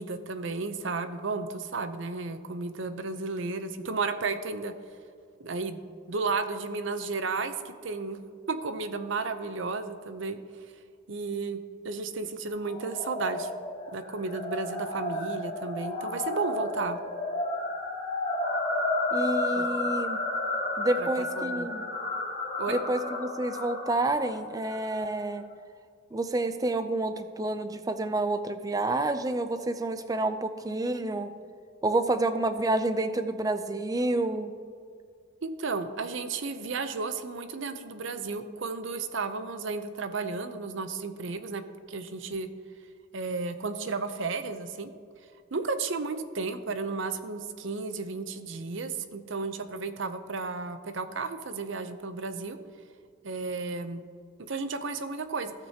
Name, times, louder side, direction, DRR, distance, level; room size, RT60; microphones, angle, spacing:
voice 1, 0.0-4.7 5.4-8.2 8.5-10.4 11.1-13.5 13.9-17.0 19.6-19.7 21.2-21.7 22.6-22.8 35.4-41.6 41.9-42.5 43.1-44.9 45.5-52.6 53.2-54.0 54.5-55.5, right 4 dB, 60° right, 10 dB, 0.6 m, -33 dB
sound 1, 12.7-25.1, left 2 dB, 25° left, 1.9 m, -32 dB
voice 2, 19.1-20.2 20.8-21.9 22.7-25.5 26.1-31.3 31.8-34.5, right 2 dB, 15° right, 10 dB, 0.4 m, -29 dB
16.5 x 6.0 x 2.9 m, 2.2 s
head